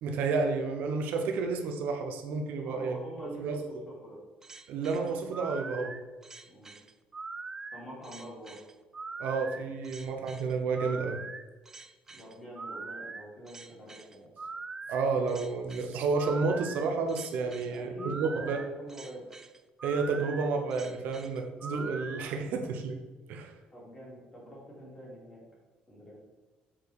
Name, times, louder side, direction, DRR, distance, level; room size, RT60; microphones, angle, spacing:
voice 1, 0.0-3.0 3.3-3.8 4.7-6.0 9.2-11.2 14.9-18.6 19.8-23.0 23.3-23.5, right 4 dB, 70° right, 5 dB, 0.8 m, -31 dB
voice 2, 2.6-4.2 6.5-6.7 7.7-8.6 12.1-14.3 17.7-19.2 23.7-25.4 25.9-26.2, equal, 15° left, -4 dB, 2.5 m, -45 dB
sound 1, 4.4-22.3, right 4 dB, 15° right, 0.3 m, -42 dB
7.3 x 4.7 x 4.8 m, 1.3 s
cardioid pair, 170°, 3 cm